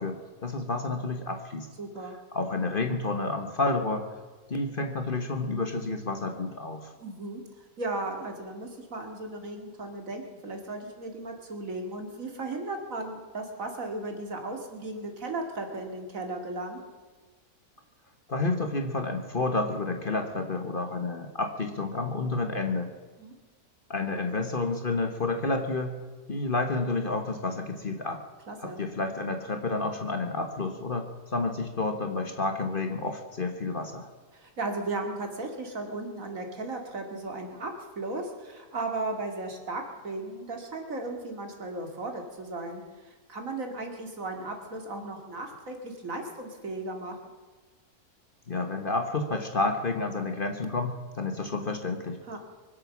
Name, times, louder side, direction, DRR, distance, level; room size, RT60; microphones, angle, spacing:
voice 1, 0.0-1.7 2.3-4.1 4.5-6.9 18.3-22.9 23.9-25.9 26.3-28.2 28.6-34.1 48.5-52.2, left 3 dB, 35° left, 5 dB, 1.4 m, -30 dB
voice 2, 1.8-2.2 7.0-16.8 23.2-23.3 28.5-28.8 34.3-47.1 52.3-52.4, right 2 dB, 60° right, 4 dB, 2.6 m, -36 dB
23.5 x 8.3 x 7.3 m, 1.4 s
omnidirectional pair, 1.6 m